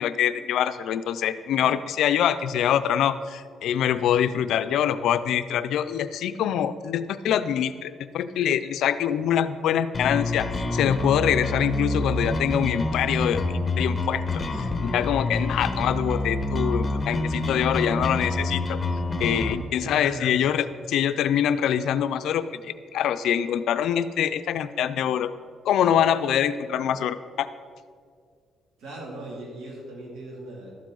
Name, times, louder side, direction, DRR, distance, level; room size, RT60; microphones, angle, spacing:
voice 1, 0.0-14.4 14.8-18.8 19.2-25.3 25.7-27.5, left 9 dB, 80° left, 12 dB, 0.4 m, -24 dB
sound 1, 9.9-19.5, left 2 dB, 30° left, 1.0 m, -27 dB
voice 2, 19.8-20.4 28.8-30.7, right 2 dB, 75° right, -2 dB, 2.7 m, -39 dB
12.5 x 7.4 x 3.9 m, 2.1 s
cardioid pair, 90°, 0 cm